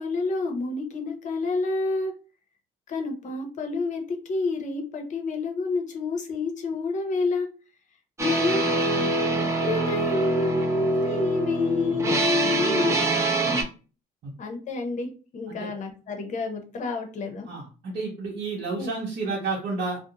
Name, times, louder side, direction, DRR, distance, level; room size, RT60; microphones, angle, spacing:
voice 1, 0.0-2.1 2.9-7.5 8.2-13.1 14.4-15.1 15.3-17.5 18.7-18.9, left 3 dB, 45° left, 4 dB, 0.7 m, -28 dB
sound 1, 8.2-13.6, right 2 dB, 15° right, 0.6 m, -25 dB
voice 2, 17.5-20.0, right 3 dB, 60° right, -5 dB, 0.9 m, -31 dB
2.4 x 2.1 x 2.8 m, 0.36 s
cardioid pair, 115°, 17 cm